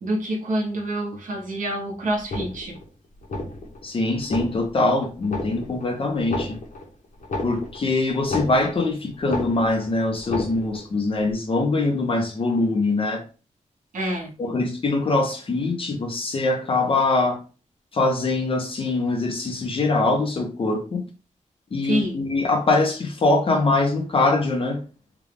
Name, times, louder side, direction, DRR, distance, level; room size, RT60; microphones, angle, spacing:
voice 1, 0.0-2.8 13.9-14.3 21.8-22.2, right 1 dB, 85° right, 1.1 m, -27 dB
sound 1, 2.2-2.9 3.2-3.8 4.2-4.9 5.2-5.9 6.2-8.9 9.2-9.9 10.2-10.9 11.2-11.3, left 2 dB, 80° left, 1.1 m, -31 dB
voice 2, 3.8-6.6 7.4-13.2 14.4-17.4 17.9-21.0 21.7-24.8, left 2 dB, 45° left, 0.9 m, -23 dB
3.5 x 2.4 x 3.4 m
wide cardioid pair, 155°, 13 cm